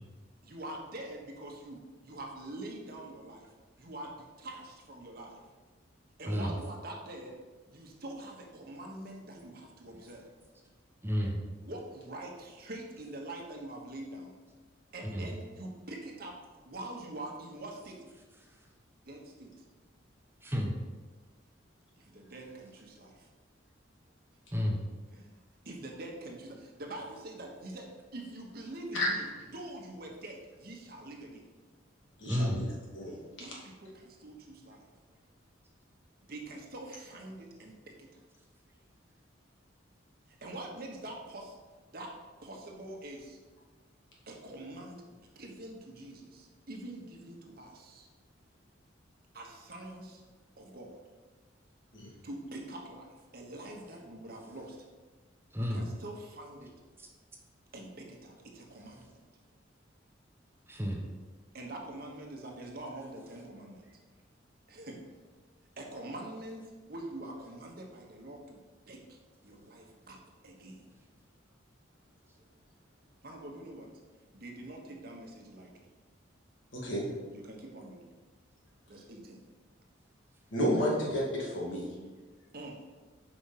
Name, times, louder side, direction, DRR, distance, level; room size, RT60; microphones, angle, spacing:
voice 1, 0.4-3.5 3.8-5.4 6.2-7.4 7.7-10.3 11.6-14.3 14.9-16.4 16.6-18.0 19.0-19.7 22.0-23.3 25.1-31.4 33.4-34.9 36.2-38.2 40.3-41.5 41.9-42.1 42.4-43.4 44.3-48.1 49.3-50.2 50.6-51.0 52.2-54.8 55.6-56.7 57.7-59.2 61.5-63.9 64.7-65.0 65.8-68.6 68.9-69.2 69.4-70.9 73.2-73.9 74.3-75.9 77.3-78.2 78.9-79.4 82.5-82.8, right 1 dB, 50° right, 1 dB, 1.1 m, -45 dB
voice 2, 11.0-11.4 15.1-15.3 20.4-20.8 24.5-24.8 32.3-32.6 55.5-55.9 60.7-61.0, equal, 10° right, 0 dB, 0.9 m, -31 dB
voice 3, 32.2-32.7 32.9-33.2 51.9-52.1 76.7-77.0 80.5-81.9, equal, 80° left, -4 dB, 2.2 m, -31 dB
5.1 x 4.9 x 5.7 m, 1.3 s
head